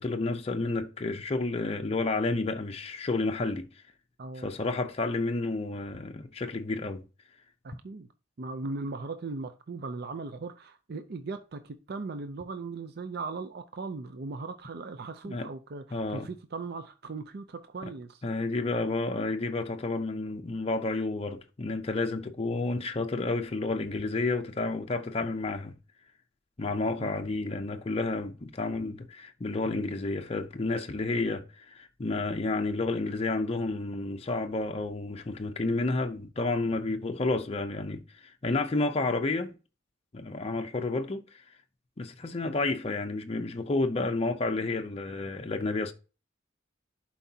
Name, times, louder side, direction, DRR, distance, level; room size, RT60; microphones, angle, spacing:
voice 1, 0.0-3.7 4.4-7.0 15.2-15.5 15.9-16.3 18.2-25.7 26.6-39.5 40.1-41.4 42.0-45.9, left 3 dB, 30° left, 0.5 m, -30 dB
voice 2, 4.2-4.5 7.6-8.1 8.4-18.2 27.0-27.1 29.6-29.9, right 3 dB, 55° right, 0.5 m, -38 dB
11.0 x 4.6 x 2.7 m
head